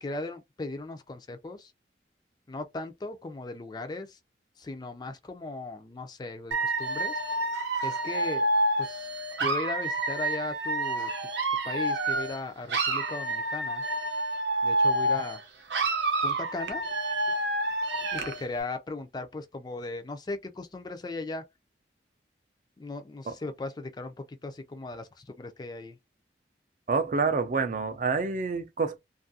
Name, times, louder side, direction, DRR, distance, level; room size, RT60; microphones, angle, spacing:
voice 1, 0.0-1.7 2.5-4.2 4.6-7.1 7.8-8.5 8.8-9.1 9.4-11.3 11.6-13.8 14.6-15.4 16.2-16.8 18.1-21.4 22.8-26.0, left 2 dB, 25° left, 0.3 m, -37 dB
Dog / Alarm, 6.5-12.4 12.7-15.4 15.7-18.4, right 2 dB, 85° right, 0.7 m, -28 dB
voice 2, 26.9-29.0, right 4 dB, 45° right, 0.4 m, -27 dB
2.6 x 2.4 x 2.6 m
head